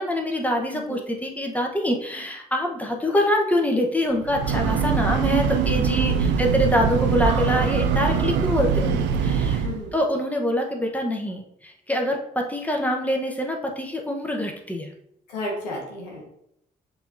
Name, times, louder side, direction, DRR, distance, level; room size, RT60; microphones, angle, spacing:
voice 1, 0.0-9.6 9.9-14.9, left 1 dB, 5° left, 1 dB, 1.0 m, -25 dB
Breathing / Train, 4.1-9.9, right 7 dB, 60° right, 0.4 m, -23 dB
voice 2, 5.9-6.4 8.8-9.2 9.6-9.9 15.3-16.3, left 1 dB, 90° left, -1 dB, 0.8 m, -34 dB
6.8 x 2.8 x 2.6 m, 0.77 s
hypercardioid pair, 40°, 21 cm